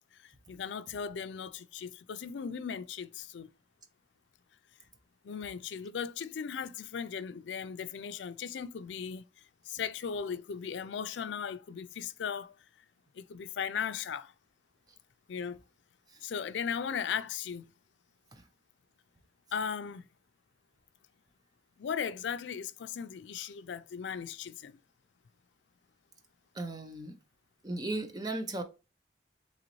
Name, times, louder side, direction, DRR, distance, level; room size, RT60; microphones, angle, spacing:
voice 1, 0.2-3.5 5.2-9.2 9.7-12.6 13.1-14.3 15.3-15.6 16.2-17.7 19.5-20.0 21.8-24.8, left 7 dB, 85° left, 0.4 m, -37 dB
voice 2, 26.6-27.2 27.6-28.6, right 2 dB, 20° right, 0.6 m, -36 dB
3.9 x 3.1 x 3.0 m
head